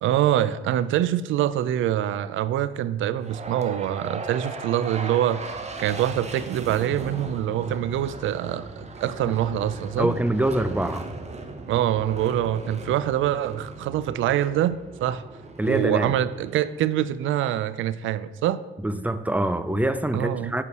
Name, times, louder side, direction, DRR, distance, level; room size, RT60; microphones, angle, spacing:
voice 1, 0.0-5.4 5.8-10.2 11.7-15.2 15.6-18.6 20.1-20.5, right 11 dB, 80° right, 0.5 m, -25 dB
sound 1, 3.2-17.4, right 3 dB, 35° right, 1.2 m, -38 dB
voice 2, 10.0-11.1 15.6-16.2 18.8-20.6, right 1 dB, 5° right, 0.6 m, -24 dB
8.4 x 4.7 x 6.7 m
cardioid pair, 90°, 20 cm